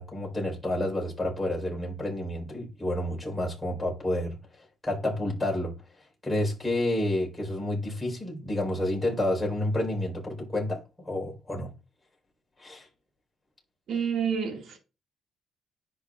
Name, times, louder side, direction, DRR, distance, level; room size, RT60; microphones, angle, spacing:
voice 1, 0.0-5.8 6.2-11.7 12.6-12.9, left 1 dB, 10° left, 4.6 m, -30 dB
voice 2, 13.9-14.8, right 7 dB, 70° right, 2.3 m, -28 dB
10.5 x 5.8 x 2.5 m
cardioid pair, 90°, 0 cm